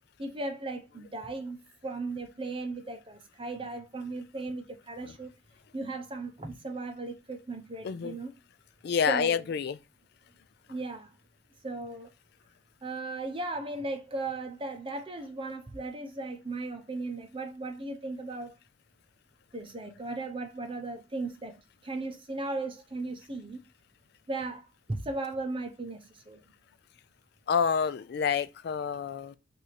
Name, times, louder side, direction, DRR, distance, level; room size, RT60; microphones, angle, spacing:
voice 1, 0.2-1.6 1.8-5.3 5.7-8.3 9.1-9.4 10.7-11.2 11.6-12.1 12.8-18.5 19.5-23.6 24.3-26.4, right 2 dB, 25° right, 0.7 m, -36 dB
voice 2, 7.8-8.2 8.8-9.8 27.5-29.4, left 6 dB, 55° left, 0.3 m, -28 dB
4.7 x 2.6 x 4.1 m
head